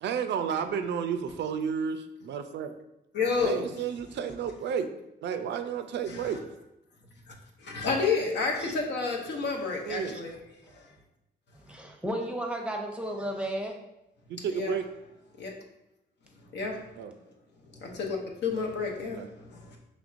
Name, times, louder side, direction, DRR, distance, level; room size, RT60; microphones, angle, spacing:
voice 1, 0.0-2.7 3.4-4.9 5.2-6.4 9.9-10.2 14.3-14.8 17.0-17.1 19.0-19.3, right 7 dB, 75° right, 9 dB, 0.4 m, -32 dB
voice 2, 3.1-3.7 6.1-6.4 7.3-7.4 7.6-10.3 10.7-10.9 14.5-14.8 15.4-15.5 16.5-16.9 17.7-19.8, left 4 dB, 70° left, 0 dB, 0.8 m, -30 dB
voice 3, 9.9-10.2 11.6-13.7, right 1 dB, 5° right, 2 dB, 0.7 m, -34 dB
5.2 x 3.2 x 2.5 m, 0.87 s
cardioid pair, 90°, 19 cm